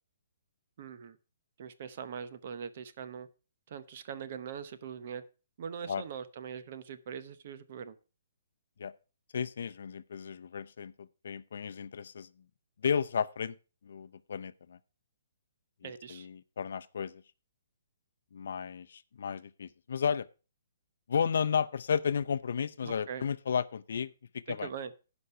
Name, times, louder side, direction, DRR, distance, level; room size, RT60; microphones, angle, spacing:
voice 1, 0.8-1.2 1.6-3.3 3.7-5.2 5.6-7.9 15.8-16.3 22.8-23.2 24.6-24.9, right 7 dB, 45° right, 0.8 m, -42 dB
voice 2, 9.3-12.3 12.8-13.5 13.8-14.8 15.8-17.2 18.3-20.3 21.1-24.7, left 7 dB, 65° left, 0.6 m, -33 dB
11.0 x 5.3 x 5.5 m
hypercardioid pair, 165°, 0 cm